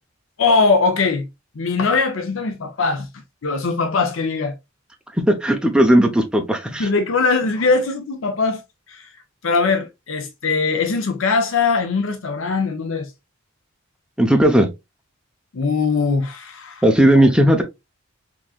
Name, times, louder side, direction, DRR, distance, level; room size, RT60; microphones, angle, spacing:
voice 1, 0.4-1.3 1.5-3.1 3.4-4.5 6.8-8.6 8.9-9.1 9.4-13.1 15.5-16.8, left 4 dB, 70° left, 0.7 m, -20 dB
voice 2, 5.3-6.9 14.2-14.7 16.8-17.6, right 1 dB, 5° right, 0.6 m, -15 dB
3.7 x 3.0 x 2.3 m
head